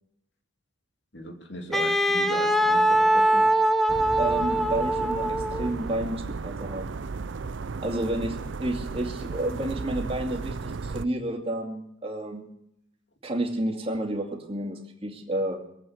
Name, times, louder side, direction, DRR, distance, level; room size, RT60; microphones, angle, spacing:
voice 1, 1.1-3.5, left 1 dB, 60° left, 4 dB, 2.6 m, -38 dB
Wind instrument woodwind instrument, 1.7-5.8, right 1 dB, ahead, 0.9 m, -22 dB
sound 1, 3.9-11.1, right 4 dB, 70° right, 0.5 m, -35 dB
voice 2, 4.2-7.0 7.8-12.5 13.2-15.6, right 1 dB, 30° right, 2 dB, 2.5 m, -30 dB
20.5 x 8.6 x 8.0 m, 0.75 s
head